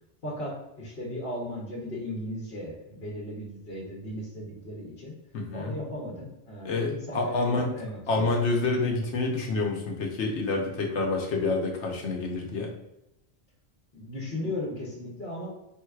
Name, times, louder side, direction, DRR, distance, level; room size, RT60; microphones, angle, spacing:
voice 1, 0.2-5.1 5.5-8.3 13.9-15.5, left 1 dB, 60° left, -4 dB, 1.2 m, -36 dB
voice 2, 5.3-5.8 6.6-7.7 8.1-12.7, left 3 dB, 85° left, 1 dB, 1.1 m, -28 dB
4.5 x 3.6 x 2.4 m, 0.88 s
omnidirectional pair, 1.1 m